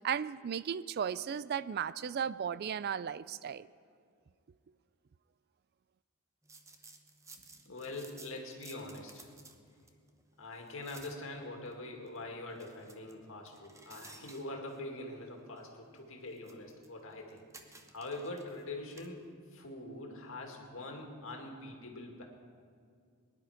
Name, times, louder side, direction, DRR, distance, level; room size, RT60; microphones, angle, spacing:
voice 1, 0.0-3.7, right 8 dB, 45° right, 17 dB, 0.3 m, -35 dB
sound 1, 6.4-19.3, right 3 dB, 15° right, 0.8 m, -58 dB
voice 2, 7.7-9.3 10.4-22.2, left 2 dB, 60° left, 1 dB, 2.2 m, -44 dB
21.5 x 11.0 x 5.0 m, 2.2 s
head